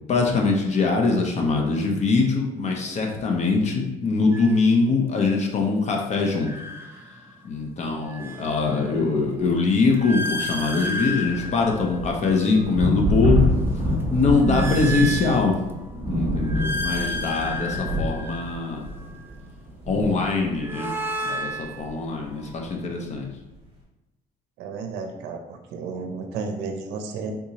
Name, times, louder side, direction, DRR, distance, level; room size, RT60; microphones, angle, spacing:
voice 1, 0.1-6.5 7.4-13.4 13.7-15.5 16.1-18.8 19.9-21.0 21.2-23.3, left 4 dB, 40° left, 1 dB, 0.6 m, -23 dB
sound 1, 4.3-4.6 6.2-7.5 7.9-12.7 13.2-15.9 16.3-19.3 20.3-22.6, left 1 dB, 15° right, 0.4 m, -33 dB
sound 2, 9.4-9.5 9.7-20.8 21.8-21.9 22.2-22.5, equal, 30° right, 1.3 m, -27 dB
voice 2, 24.6-27.3, right 4 dB, 90° right, 4 dB, 0.5 m, -33 dB
3.6 x 2.7 x 2.9 m, 1.0 s
cardioid pair, 110°, 17 cm